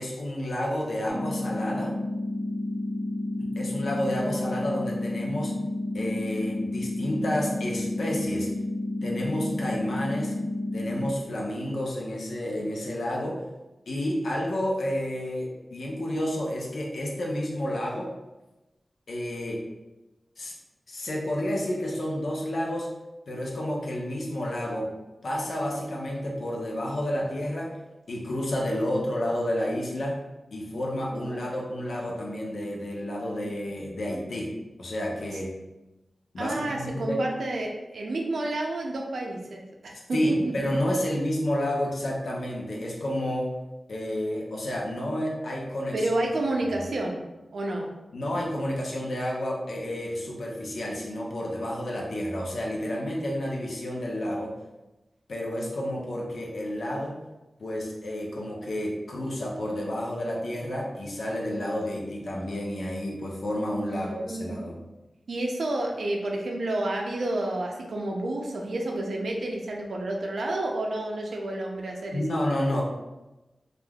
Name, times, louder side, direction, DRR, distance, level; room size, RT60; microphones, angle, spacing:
voice 1, 0.0-1.9 3.4-5.5 5.9-8.5 9.0-10.3 10.7-13.4 13.9-18.1 19.1-19.6 20.4-20.5 20.9-22.9 23.3-24.9 25.2-27.8 28.1-30.2 30.5-34.5 34.8-35.5 36.3-37.2 40.1-43.5 43.9-46.1 46.5-46.6 48.1-54.5 55.3-57.2 57.6-64.8 72.1-72.8, left 1 dB, 80° left, -2 dB, 0.6 m, -30 dB
sound 1, 1.1-11.1, left 2 dB, 40° left, 0.9 m, -31 dB
voice 2, 36.4-40.4 45.9-47.2 47.5-47.9 63.9-64.6 65.3-72.4, right 1 dB, 90° right, 1 dB, 0.4 m, -30 dB
3.3 x 2.4 x 2.3 m, 1.0 s
wide cardioid pair, 105°, 0 cm